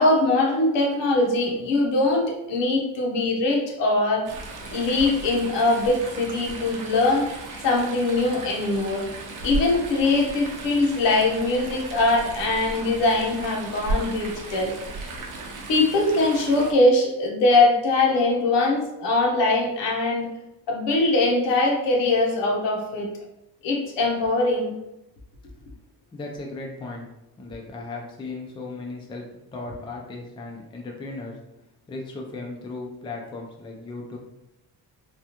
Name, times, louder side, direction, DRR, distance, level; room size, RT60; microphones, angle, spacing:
voice 1, 0.0-4.3 4.7-7.3 7.6-9.0 9.4-14.7 15.7-20.3 20.7-23.1 23.6-24.7, left 2 dB, 80° left, -1 dB, 1.0 m, -22 dB
Chatter / Stream, 4.2-16.7, right 2 dB, 50° right, 0.7 m, -35 dB
voice 2, 26.1-27.1 27.4-29.2 29.5-31.4 31.9-34.2, left 3 dB, 15° left, 0 dB, 0.3 m, -36 dB
3.4 x 2.4 x 2.8 m, 0.90 s
cardioid pair, 145°, 42 cm